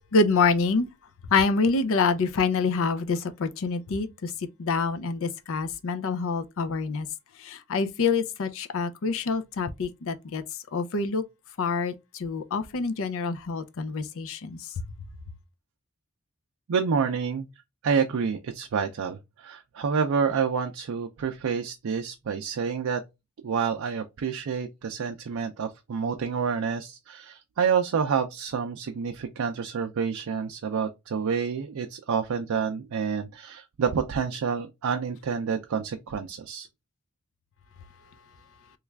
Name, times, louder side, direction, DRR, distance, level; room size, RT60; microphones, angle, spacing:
voice 1, 0.1-0.9 1.3-4.3 4.6-7.1 7.4-10.4 10.7-11.2 11.6-14.7, left 4 dB, 65° left, 0.5 m, -26 dB
voice 2, 16.7-17.5 17.8-23.0 23.4-36.7, right 6 dB, 70° right, 0.4 m, -28 dB
3.1 x 2.4 x 3.2 m
head